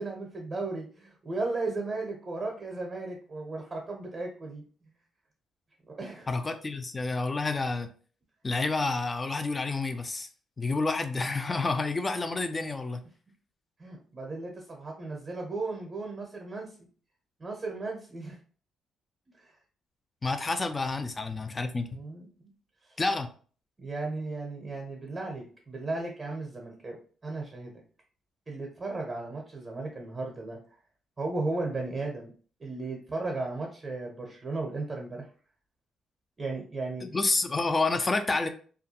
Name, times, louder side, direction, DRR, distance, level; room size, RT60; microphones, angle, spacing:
voice 1, 0.0-4.6 5.9-6.3 13.8-16.7 17.4-18.4 19.4-19.5 21.9-22.3 22.9-23.0 23.8-27.0 27.2-27.8 28.5-30.6 31.2-32.3 32.6-35.3 36.4-37.1, right 3 dB, 30° right, 0.7 m, -35 dB
voice 2, 6.3-7.9 8.4-10.3 10.6-13.0 20.2-22.0 23.0-23.3 37.0-38.5, left 3 dB, 25° left, 0.4 m, -29 dB
2.4 x 2.2 x 2.8 m
cardioid pair, 90°, 0 cm